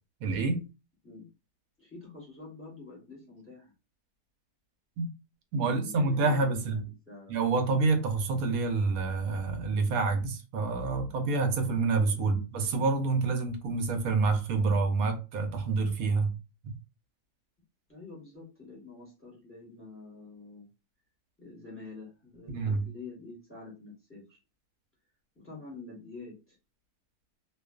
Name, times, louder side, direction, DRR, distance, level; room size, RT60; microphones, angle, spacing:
voice 1, 0.2-0.6 5.0-5.1 5.5-6.8 7.3-16.4 16.6-16.7 22.5-22.8, right 3 dB, 70° right, 1.0 m, -27 dB
voice 2, 1.8-3.7 5.6-7.4 12.1-12.4 17.9-20.7 21.4-24.4 25.3-26.5, left 3 dB, 10° left, 0.9 m, -47 dB
2.5 x 2.3 x 2.3 m
omnidirectional pair, 1.7 m